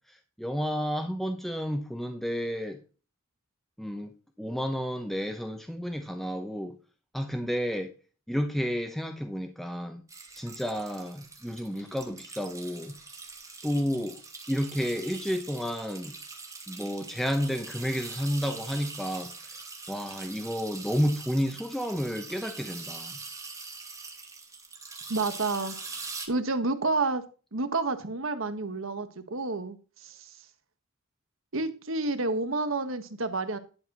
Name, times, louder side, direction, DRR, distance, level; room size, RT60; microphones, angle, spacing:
voice 1, 0.4-2.8 3.8-6.8 7.1-7.9 8.3-10.0 10.3-13.0 13.6-14.2 14.5-16.2 16.7-19.6 19.9-23.2, equal, ahead, 0.9 m, -31 dB
sound 1, 10.1-26.3, right 4 dB, 15° right, 2.4 m, -43 dB
voice 2, 25.1-25.7 26.3-27.2 27.5-29.8 30.0-30.1 31.5-33.6, right 3 dB, 70° right, 1.4 m, -29 dB
11.5 x 4.4 x 6.1 m
head